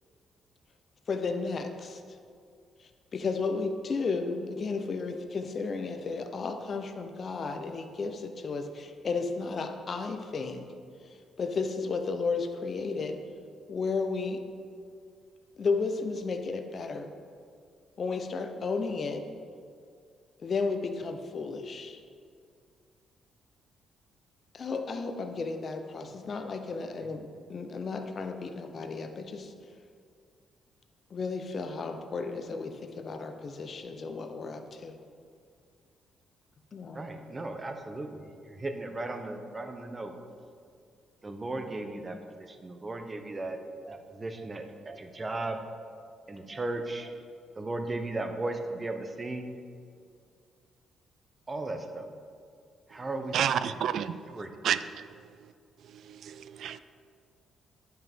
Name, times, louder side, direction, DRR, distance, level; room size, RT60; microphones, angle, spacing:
voice 1, 1.1-2.0 3.1-10.7 11.4-13.2 13.7-14.4 15.6-17.1 18.0-19.3 20.4-22.0 24.5-29.5 31.1-35.0 36.7-37.0, left 4 dB, 45° left, 7 dB, 0.6 m, -33 dB
voice 2, 36.9-40.1 41.2-43.6 43.9-45.6 46.0-47.1 47.5-49.6 51.5-52.1 52.9-53.8 54.3-54.6, right 2 dB, 25° right, 6 dB, 0.8 m, -36 dB
voice 3, 53.3-54.2 54.6-54.8, right 9 dB, 70° right, 14 dB, 0.3 m, -27 dB
10.0 x 5.7 x 3.6 m, 2.2 s
cardioid pair, 90°, 0 cm